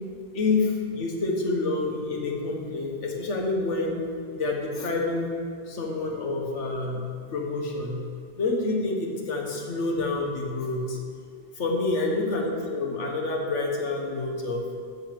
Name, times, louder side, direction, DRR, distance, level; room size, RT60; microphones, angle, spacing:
voice 1, 0.3-4.0 4.3-5.3 5.7-7.0 7.3-8.0 8.4-11.0 11.6-14.6, left 3 dB, 75° left, 1 dB, 1.6 m, -28 dB
8.9 x 5.5 x 7.8 m, 2.2 s
omnidirectional pair, 1.2 m